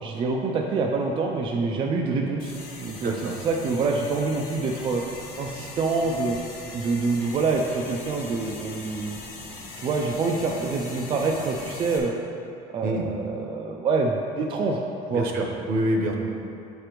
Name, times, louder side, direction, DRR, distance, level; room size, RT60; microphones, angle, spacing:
voice 1, 0.0-2.5 2.8-5.0 5.4-6.4 6.7-9.2 9.8-12.1 12.7-14.8 15.1-15.2, right 4 dB, 30° right, 1 dB, 0.3 m, -26 dB
sound 1, 2.4-12.0, left 2 dB, 50° left, 1.1 m, -41 dB
voice 2, 3.0-3.3 12.8-13.0 15.1-16.1, right 1 dB, 60° right, 1 dB, 0.8 m, -26 dB
7.6 x 5.0 x 3.0 m, 2.6 s
cardioid pair, 160°, 18 cm